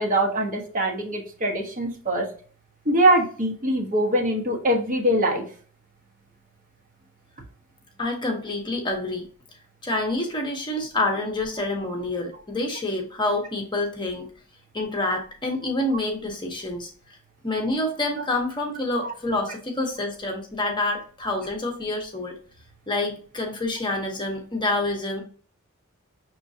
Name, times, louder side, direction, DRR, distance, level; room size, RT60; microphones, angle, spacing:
voice 1, 0.0-2.3 2.8-5.4 19.0-19.1, right 1 dB, 40° right, 1 dB, 1.1 m, -23 dB
voice 2, 8.0-9.3 9.8-14.3 14.7-16.9 17.4-22.4 22.9-25.2, left 2 dB, 20° left, 2 dB, 0.9 m, -27 dB
5.9 x 3.1 x 2.7 m, 0.43 s
head